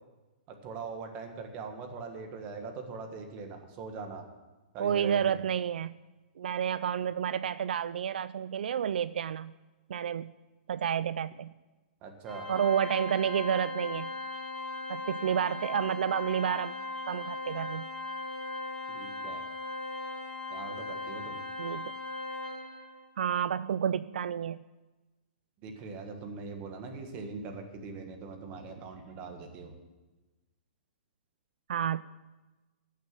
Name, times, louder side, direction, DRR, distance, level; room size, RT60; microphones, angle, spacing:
voice 1, 0.6-4.3 4.7-5.2 12.0-12.5 18.9-19.4 20.5-21.4 25.6-29.8, right 4 dB, 25° right, 5 dB, 1.5 m, -41 dB
voice 2, 4.8-6.0 6.4-9.5 9.9-10.3 10.7-11.5 12.5-14.1 14.9-16.7 17.1-17.9 21.6-21.9 23.2-24.6 31.7-32.0, right 8 dB, 85° right, 16 dB, 0.3 m, -30 dB
Organ, 12.3-23.0, left 2 dB, ahead, 1.3 m, -38 dB
15.0 x 6.6 x 7.6 m, 1.2 s
hypercardioid pair, 165°, 5 cm